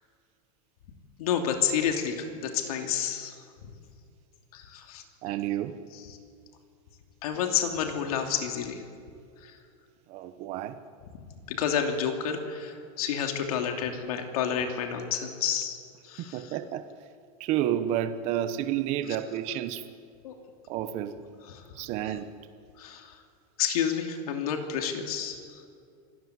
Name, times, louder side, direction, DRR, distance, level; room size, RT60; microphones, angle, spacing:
voice 1, 1.2-3.4 3.6-3.7 4.5-5.0 5.9-6.2 7.2-8.8 9.4-9.6 11.1-15.8 16.0-16.6 19.1-19.2 20.2-20.3 21.4-21.7 22.0-22.2 22.8-23.2 23.6-25.6, left 8 dB, 70° left, 4 dB, 2.9 m, -30 dB
voice 2, 5.2-5.8 10.1-10.8 16.2-16.9 17.4-19.9 20.7-21.1 21.8-22.3, right 11 dB, 35° right, 10 dB, 1.1 m, -30 dB
25.5 x 15.0 x 9.7 m, 2.4 s
supercardioid pair, 170°, 20 cm